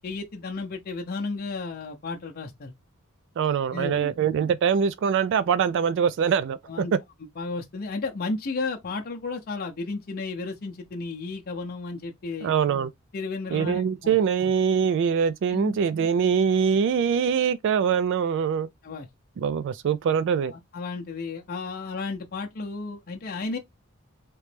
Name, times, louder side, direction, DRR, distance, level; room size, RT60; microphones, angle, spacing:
voice 1, 0.0-2.7 3.7-4.1 6.7-6.9 7.4-12.5 13.1-14.2 15.5-15.7 18.8-19.1 20.5-23.6, left 3 dB, 45° left, 0.6 m, -33 dB
voice 2, 3.4-6.8 12.4-12.9 13.5-18.7 19.4-20.5, right 7 dB, 60° right, 0.3 m, -23 dB
3.2 x 3.0 x 3.2 m
head